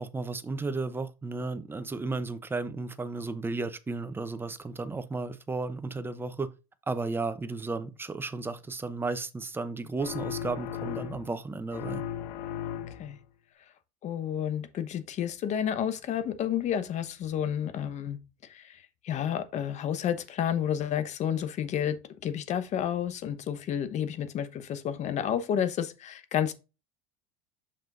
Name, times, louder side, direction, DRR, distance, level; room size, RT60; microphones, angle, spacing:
voice 1, 0.0-6.5 6.9-12.0, right 3 dB, 10° right, 0.7 m, -34 dB
sound 1, 10.0-11.4 11.7-13.2, left 10 dB, 75° left, 1.0 m, -36 dB
voice 2, 14.0-18.2 18.5-22.0 22.2-26.5, left 9 dB, 40° left, 1.0 m, -30 dB
6.6 x 5.9 x 2.5 m
supercardioid pair, 120°, 19 cm